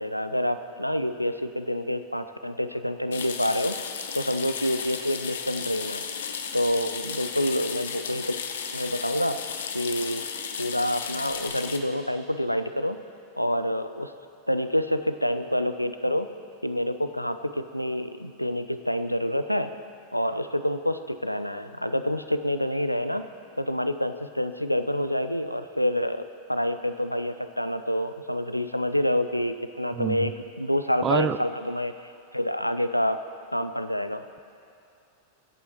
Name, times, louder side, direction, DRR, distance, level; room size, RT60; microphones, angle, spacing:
voice 1, 0.0-3.8 4.1-6.0 6.5-8.3 8.7-9.4 9.7-10.2 10.6-13.0 13.4-14.1 14.5-16.3 16.6-19.7 20.1-23.3 23.6-31.9 32.3-33.2 33.5-34.2, equal, 90° left, 10 dB, 0.5 m, -27 dB
sound 1, 3.1-11.8, left 7 dB, 65° left, 0.8 m, -34 dB
voice 2, 29.9-30.3 31.0-31.4, right 8 dB, 25° right, 14 dB, 0.4 m, -26 dB
24.0 x 8.5 x 3.0 m, 2.5 s
figure-of-eight pair, 90°, 0 cm